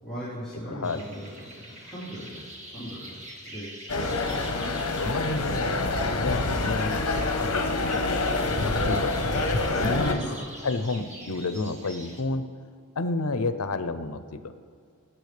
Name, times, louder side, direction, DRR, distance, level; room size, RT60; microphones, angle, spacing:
voice 1, 0.0-3.2 3.5-3.7 10.1-10.4, equal, 5° left, -14 dB, 3.6 m, -38 dB
voice 2, 0.7-1.0 5.0-8.4 8.7-9.1 9.8-10.2 10.6-12.5 13.0-14.5, left 3 dB, 80° left, 11 dB, 0.7 m, -30 dB
sound 1, 0.8-12.2, right 1 dB, 35° right, 1.6 m, -45 dB
sound 2, 3.9-10.1, left 2 dB, 65° left, 1.1 m, -26 dB
21.0 x 8.9 x 3.4 m, 2.2 s
head